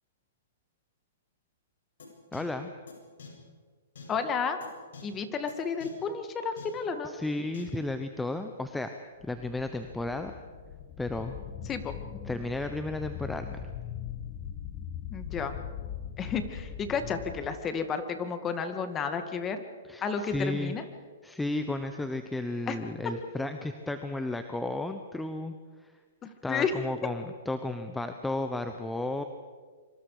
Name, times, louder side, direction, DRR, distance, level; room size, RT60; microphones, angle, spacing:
sound 1, 2.0-2.1 2.3-2.4 2.9-3.0 3.2-3.3 4.0-4.1 4.6-4.7 4.9-5.0 5.5-5.6 5.8-5.9 6.6-6.7 7.5-7.6, left 6 dB, 80° left, 7.6 m, -45 dB
voice 1, 2.3-2.7 7.0-8.9 9.3-10.3 11.0-11.4 12.3-13.7 19.9-20.7 21.2-25.5 25.8-25.9 26.4-29.2, left 2 dB, 5° left, 7 dB, 1.0 m, -33 dB
voice 2, 4.1-4.6 5.0-7.1 11.7-11.9 15.1-15.6 16.2-19.6 20.0-20.8 22.7-22.8 26.2-26.7, left 6 dB, 20° left, 8 dB, 2.1 m, -32 dB
sound 2, 9.2-17.5, left 8 dB, 35° left, 1.9 m, -40 dB
26.0 x 25.5 x 5.0 m, 1.5 s
hypercardioid pair, 140°, 0 cm